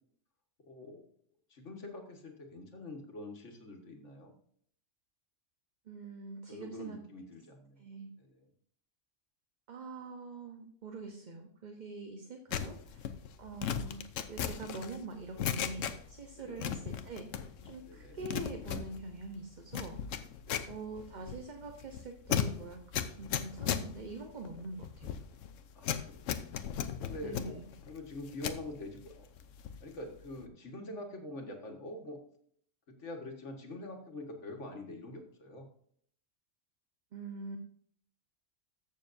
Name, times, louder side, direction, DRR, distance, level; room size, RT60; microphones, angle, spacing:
voice 1, 0.7-1.1 1.5-4.3 6.5-7.9 8.2-8.5 16.3-16.7 17.8-18.2 20.4-20.8 25.8-26.4 27.0-29.3 29.8-32.2 32.9-35.7, left 2 dB, 70° left, 3 dB, 1.9 m, -45 dB
voice 2, 5.9-7.0 7.8-8.1 9.7-13.1 13.4-14.0 14.3-20.0 20.7-25.1 27.2-27.7 37.1-37.6, right 3 dB, 40° right, 4 dB, 0.9 m, -44 dB
sound 1, 12.5-16.3 16.6-17.7 18.0-28.7 29.1-29.9 30.2-30.5, left 8 dB, 90° left, 1.1 m, -37 dB
14.0 x 6.8 x 2.6 m, 0.62 s
omnidirectional pair, 1.3 m